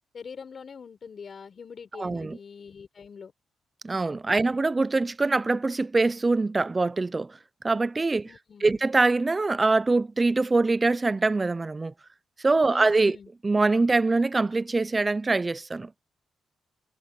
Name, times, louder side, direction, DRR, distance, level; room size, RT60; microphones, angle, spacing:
voice 1, 0.1-3.3 4.3-4.6 8.3-8.8 12.7-13.3, left 6 dB, 50° left, 6.6 m, -44 dB
voice 2, 2.0-2.4 3.8-7.4 7.6-8.3 8.6-11.9 12.4-13.2 13.4-15.9, right 3 dB, 25° right, 0.6 m, -24 dB
cardioid pair, 105°, 0 cm